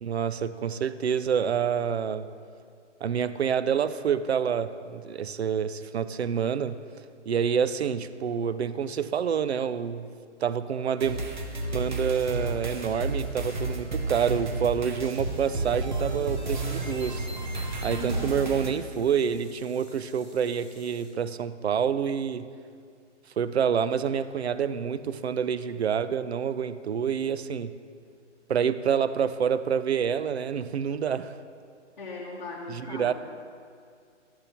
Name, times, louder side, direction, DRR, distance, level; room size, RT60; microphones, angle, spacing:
voice 1, 0.0-2.3 3.0-6.8 7.3-10.1 10.4-11.2 11.7-17.3 17.8-22.5 23.4-27.7 28.5-31.4 32.7-33.1, right 7 dB, 60° right, 14 dB, 0.5 m, -27 dB
sound 1, 11.0-18.7, right 2 dB, 40° right, 0.9 m, -31 dB
sound 2, 15.3-21.1, equal, ahead, 2.2 m, -57 dB
voice 2, 17.9-18.4 32.0-33.1, left 2 dB, 40° left, -3 dB, 0.9 m, -38 dB
12.0 x 10.0 x 2.9 m, 2.2 s
hypercardioid pair, 180°, 36 cm